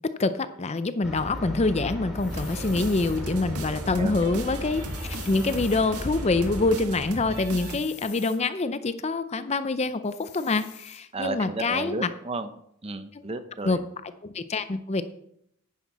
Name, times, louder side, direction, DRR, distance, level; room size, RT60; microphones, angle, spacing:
voice 1, 0.2-4.8 5.3-12.1 13.6-13.8 14.2-15.0, left 3 dB, 30° left, 12 dB, 0.5 m, -26 dB
sound 1, 1.0-6.8, equal, ahead, 2.8 m, -36 dB
sound 2, 2.1-3.2 4.6-5.8 7.3-8.4 10.0-11.0, left 10 dB, 50° left, 1.5 m, -46 dB
sound 3, 2.3-7.8, right 1 dB, 85° right, 1.6 m, -37 dB
voice 2, 3.9-4.4 11.1-12.5 12.8-13.9, right 2 dB, 25° right, 11 dB, 0.6 m, -33 dB
10.5 x 9.7 x 4.2 m, 0.74 s
head